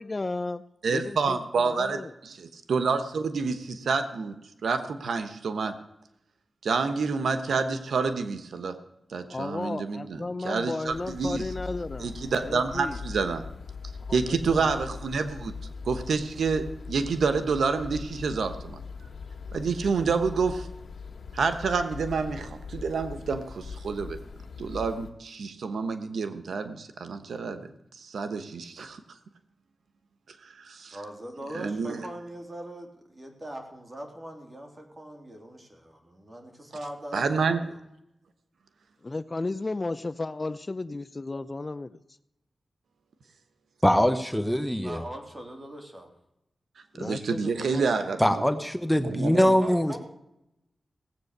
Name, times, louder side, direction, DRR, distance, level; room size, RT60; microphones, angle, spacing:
voice 1, 0.0-0.6 0.9-2.1 9.3-12.1 12.4-13.0 14.1-14.7 39.0-42.0 46.9-48.0, left 2 dB, 35° left, 14 dB, 0.5 m, -34 dB
voice 2, 0.8-4.3 4.6-5.8 6.6-8.8 9.1-11.4 12.0-13.4 14.1-15.5 15.8-18.8 19.5-20.7 21.3-24.2 24.6-27.6 28.0-29.0 30.6-31.0 31.5-32.0 37.1-37.6 47.0-48.5 49.0-49.5, right 4 dB, 90° right, 9 dB, 1.0 m, -28 dB
sound 1, 10.9-25.1, left 5 dB, 75° left, 1.8 m, -41 dB
voice 3, 30.9-37.8 44.8-46.1 49.4-50.0, right 1 dB, 35° right, 3 dB, 3.3 m, -41 dB
voice 4, 43.8-45.0 48.2-50.0, equal, 5° left, 9 dB, 1.0 m, -23 dB
17.5 x 8.2 x 6.6 m, 0.84 s
cardioid pair, 65°, 0 cm